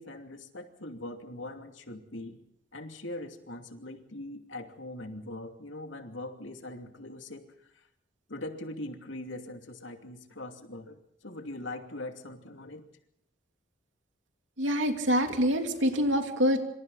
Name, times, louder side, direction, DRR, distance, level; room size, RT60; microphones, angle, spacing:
voice 1, 0.0-2.4 2.7-7.5 7.7-7.9 8.3-12.8, left 1 dB, 85° left, 5 dB, 2.7 m, -41 dB
voice 2, 14.6-16.6, equal, 80° right, 4 dB, 2.9 m, -26 dB
26.5 x 26.0 x 4.1 m, 0.75 s
head